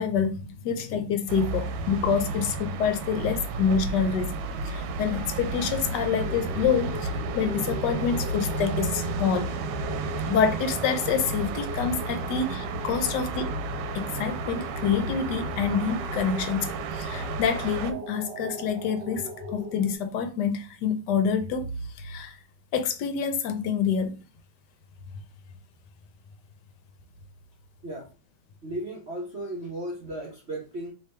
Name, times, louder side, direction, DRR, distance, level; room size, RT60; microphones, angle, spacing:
voice 1, 0.0-4.4 4.6-9.5 10.3-13.5 13.9-16.7 16.9-21.7 22.0-22.4 22.7-24.2, left 6 dB, 70° left, 1.1 m, -27 dB
sound 1, 1.3-17.9, right 3 dB, 85° right, 1.4 m, -32 dB
sound 2, 6.2-19.9, left 1 dB, 65° right, 1.5 m, -41 dB
voice 2, 28.6-30.9, right 1 dB, 45° right, 0.9 m, -35 dB
3.3 x 3.2 x 4.3 m
omnidirectional pair, 2.2 m